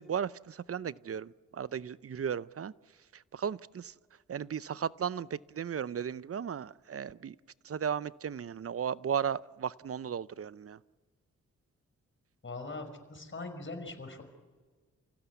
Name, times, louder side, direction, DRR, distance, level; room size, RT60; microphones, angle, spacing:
voice 1, 0.0-2.7 3.1-3.9 4.3-7.4 7.6-10.8, right 8 dB, 50° right, 18 dB, 0.7 m, -35 dB
voice 2, 12.4-14.2, left 3 dB, 40° left, 5 dB, 5.5 m, -41 dB
28.5 x 16.5 x 8.3 m, 1.4 s
cardioid pair, 50°, 31 cm